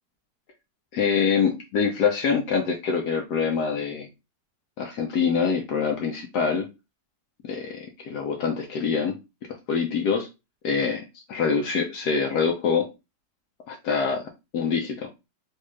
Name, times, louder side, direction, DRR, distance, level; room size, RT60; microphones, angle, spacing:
voice 1, 0.9-4.1 4.8-6.7 7.4-9.2 9.7-10.3 10.6-12.9 13.7-14.2 14.5-15.1, left 6 dB, 70° left, 3 dB, 1.1 m, -25 dB
3.3 x 2.8 x 3.1 m, 0.25 s
omnidirectional pair, 1.9 m